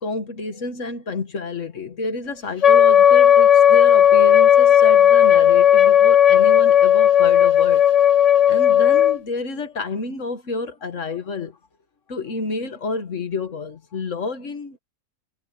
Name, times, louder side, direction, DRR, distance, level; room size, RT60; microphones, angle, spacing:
voice 1, 0.0-7.9 8.5-11.6 12.1-14.8, left 3 dB, 70° left, 1.9 m, -29 dB
Wind instrument woodwind instrument, 2.6-9.2, left 10 dB, 45° left, 0.5 m, -14 dB
omnidirectional pair, 1.4 m